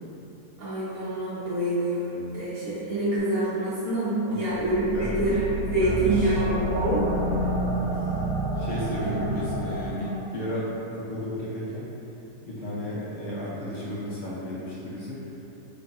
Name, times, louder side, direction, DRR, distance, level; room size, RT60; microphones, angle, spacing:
voice 1, 0.6-5.4 5.7-7.0 9.1-9.2, right 1 dB, 50° right, -12 dB, 1.4 m, -26 dB
sound 1, 4.6-10.2, right 2 dB, 80° right, 1.2 m, -29 dB
voice 2, 4.9-5.4 5.8-6.4 7.8-8.2 8.6-11.9 12.4-15.2, left 1 dB, 55° left, -8 dB, 0.8 m, -33 dB
3.4 x 3.0 x 2.6 m, 2.9 s
omnidirectional pair, 1.7 m